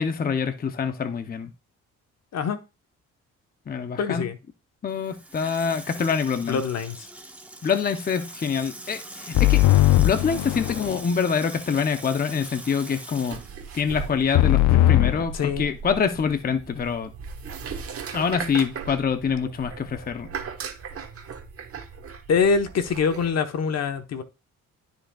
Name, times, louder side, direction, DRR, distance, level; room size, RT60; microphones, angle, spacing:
voice 1, 0.0-1.5 3.7-4.3 4.8-6.6 7.6-9.6 10.0-13.4 13.7-17.1 18.1-20.3, left 6 dB, 30° left, 8 dB, 0.7 m, -25 dB
voice 2, 4.0-4.4 6.5-7.1 15.3-15.7 22.3-24.2, left 5 dB, 60° left, 8 dB, 1.1 m, -24 dB
Water tap faucet / Sink (filling or washing), 4.9-14.6 14.9-15.0, right 1 dB, 5° right, 1.2 m, -42 dB
sound 1, 9.3-11.0 14.3-15.2, left 16 dB, 75° left, 0.5 m, -19 dB
sound 2, 13.3-23.3, right 6 dB, 50° right, 1.3 m, -37 dB
13.0 x 5.2 x 2.3 m, 0.28 s
cardioid pair, 90°, 30 cm